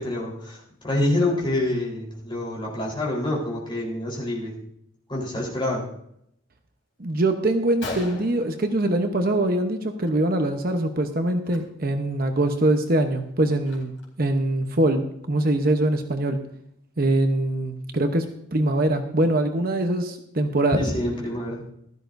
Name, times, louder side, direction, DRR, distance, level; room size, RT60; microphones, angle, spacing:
voice 1, 0.0-4.6 5.1-5.8 20.7-21.6, left 1 dB, 25° left, -2 dB, 4.0 m, -26 dB
voice 2, 7.0-16.4 17.0-18.3 18.5-20.8, right 1 dB, 45° right, 6 dB, 0.9 m, -23 dB
Gunshot gunfire, 7.1-7.2 7.5-7.6 7.8-9.4 9.7-10.1 10.4-10.6 11.4-11.6 12.1-12.2 12.6-14.2, left 3 dB, 60° left, 4.0 m, -39 dB
16.0 x 12.5 x 2.6 m, 0.74 s
head